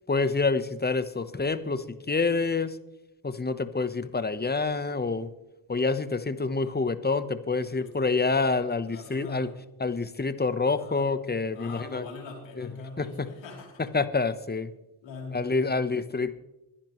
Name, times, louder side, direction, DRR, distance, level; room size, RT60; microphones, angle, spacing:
voice 1, 0.1-2.8 3.2-5.3 5.7-9.5 9.8-12.1 12.6-12.7 13.0-13.3 13.8-14.7 15.3-16.3, left 4 dB, 20° left, 12 dB, 1.0 m, -27 dB
voice 2, 7.6-8.1 8.9-9.5 10.6-11.1 11.5-13.9 15.0-15.9, left 4 dB, 80° left, 0 dB, 3.4 m, -42 dB
21.5 x 10.0 x 3.2 m, 0.95 s
supercardioid pair, 45°, 44 cm